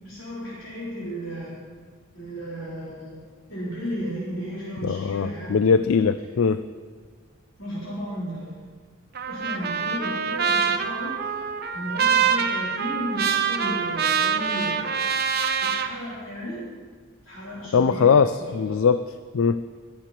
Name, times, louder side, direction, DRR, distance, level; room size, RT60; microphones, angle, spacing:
voice 1, 0.0-1.5 2.1-3.2 3.5-5.5 7.6-8.6 9.3-11.4 11.7-15.0 15.7-16.6 17.2-18.9, equal, 70° left, -8 dB, 4.4 m, -34 dB
voice 2, 4.8-6.6 17.7-19.0 19.3-19.6, left 5 dB, 90° left, 12 dB, 0.4 m, -20 dB
Trumpet, 9.1-15.9, right 6 dB, 50° right, 0.8 m, -25 dB
21.0 x 8.4 x 4.5 m, 1.6 s
head